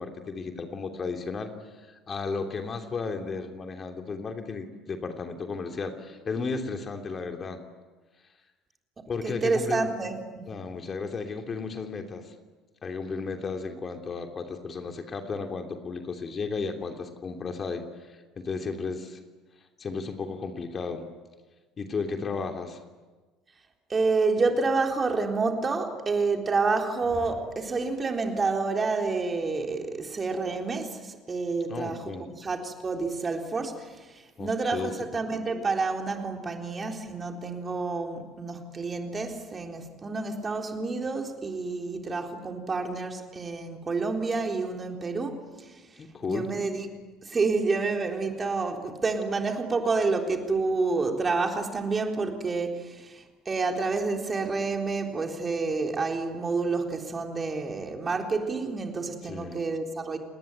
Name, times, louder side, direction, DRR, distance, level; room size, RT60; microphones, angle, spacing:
voice 1, 0.0-1.5 1.9-7.6 9.1-9.9 10.5-12.3 12.8-19.2 19.8-21.0 21.8-22.8 31.7-32.3 34.4-34.9 46.0-46.5 59.2-59.6, left 4 dB, 35° left, 4 dB, 3.0 m, -34 dB
voice 2, 9.2-10.5 23.9-45.8 46.2-46.9 47.2-60.2, right 4 dB, 25° right, 3 dB, 3.8 m, -29 dB
29.5 x 20.0 x 9.4 m, 1.3 s
figure-of-eight pair, 60°, 0 cm